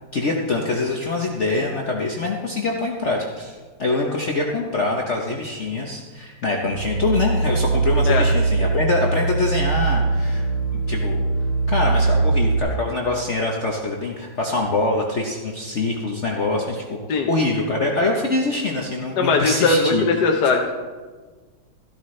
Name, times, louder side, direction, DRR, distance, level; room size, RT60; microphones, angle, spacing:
voice 1, 0.1-10.4 10.7-11.2 11.7-17.0 17.3-20.0, left 2 dB, 45° left, -1 dB, 1.0 m, -24 dB
sound 1, 6.6-12.6, right 3 dB, 90° left, 2.1 m, -21 dB
voice 2, 19.2-20.7, left 4 dB, 65° left, 2 dB, 1.3 m, -19 dB
14.0 x 12.5 x 3.2 m, 1.4 s
omnidirectional pair, 2.1 m